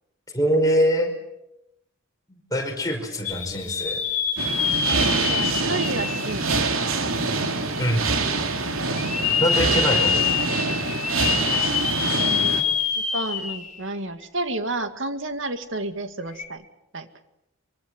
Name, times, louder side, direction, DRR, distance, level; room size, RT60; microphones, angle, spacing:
voice 1, 0.3-1.1 2.3-4.0 7.8-8.1 9.4-10.2, equal, 15° left, 2 dB, 5.1 m, -23 dB
sound 1, 3.2-7.2 7.7-7.8 8.9-13.8 14.2-14.3 16.3-16.4, left 7 dB, 35° left, 2.8 m, -26 dB
sound 2, 4.4-12.6, right 3 dB, 80° right, 3.0 m, -25 dB
voice 2, 5.3-6.6 9.9-10.3 12.2-12.6 13.0-16.7 16.9-17.1, right 2 dB, 60° right, 8 dB, 2.2 m, -31 dB
24.5 x 24.0 x 7.8 m, 0.86 s
head